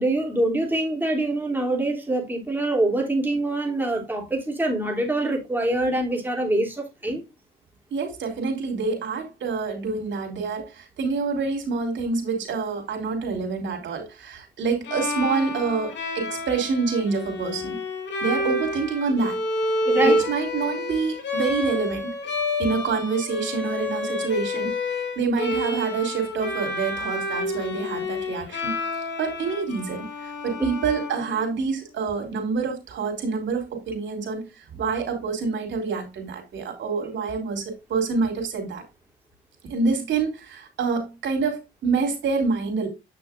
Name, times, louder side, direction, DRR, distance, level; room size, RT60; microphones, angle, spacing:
voice 1, 0.0-7.2 19.8-20.2 30.6-30.7, right 2 dB, 10° right, 3.1 m, -24 dB
voice 2, 7.9-17.8 18.2-19.4 20.0-22.1 22.6-38.8 39.7-42.9, right 4 dB, 70° right, 3.6 m, -27 dB
Bowed string instrument, 14.8-31.8, left 2 dB, 65° left, 2.7 m, -29 dB
8.8 x 6.3 x 2.5 m
cardioid pair, 90°, 20 cm